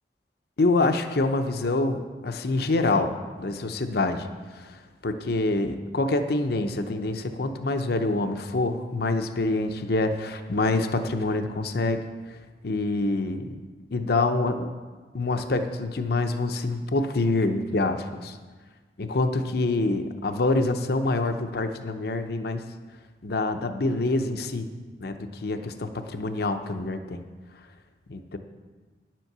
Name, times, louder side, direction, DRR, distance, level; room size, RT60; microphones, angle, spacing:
voice 1, 0.6-3.1 3.4-4.3 4.5-12.0 12.6-13.6 13.9-14.7 15.1-18.4 19.0-22.6 23.2-24.7 25.0-25.2 25.4-27.2 28.1-28.4, left 2 dB, 60° left, 7 dB, 0.7 m, -26 dB
10.0 x 7.5 x 6.7 m, 1.4 s
head